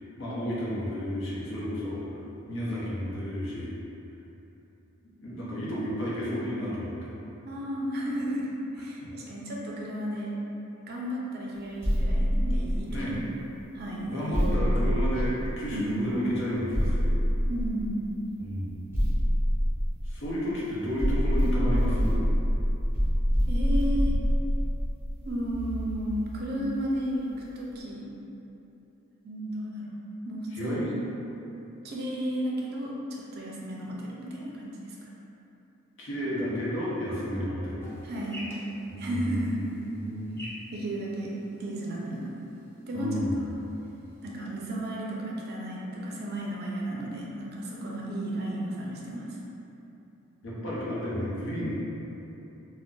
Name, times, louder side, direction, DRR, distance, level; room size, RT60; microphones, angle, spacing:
voice 1, 0.2-2.0 2.5-3.7 5.2-7.1 9.0-9.1 12.9-13.2 14.1-17.2 18.4-18.9 20.0-22.2 30.5-30.9 36.0-37.9 38.9-40.5 42.9-43.5 50.4-51.7, equal, 60° left, -8 dB, 0.7 m, -32 dB
voice 2, 7.4-10.3 10.9-13.2 13.7-14.9 15.7-16.0 17.5-18.0 23.5-24.2 25.2-28.1 29.2-30.0 30.2-31.0 31.8-35.1 38.0-38.4 39.0-39.6 40.7-41.3 41.6-42.3 42.8-43.2 44.2-49.3, equal, 50° right, -4 dB, 0.4 m, -33 dB
sound 1, 11.8-13.3 14.3-15.9 16.7-18.1 18.9-20.5 21.0-26.3, equal, 10° right, 0.8 m, -26 dB
sound 2, 37.8-44.2, equal, 10° left, 0.4 m, -49 dB
2.4 x 2.1 x 3.6 m, 3.0 s
head